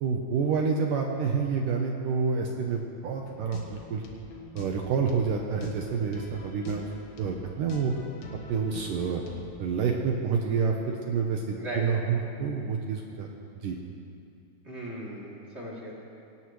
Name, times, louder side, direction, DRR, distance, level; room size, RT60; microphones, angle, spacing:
voice 1, 0.0-4.0 4.6-6.9 7.2-7.9 8.5-9.2 9.6-13.3 13.6-13.8, right 5 dB, 70° right, 1 dB, 2.2 m, -28 dB
sound 1, 3.2-9.5, left 2 dB, 55° left, 2.2 m, -45 dB
voice 2, 14.6-15.9, right 1 dB, 20° right, -6 dB, 2.5 m, -37 dB
22.5 x 18.5 x 3.2 m, 2.5 s
omnidirectional pair, 4.6 m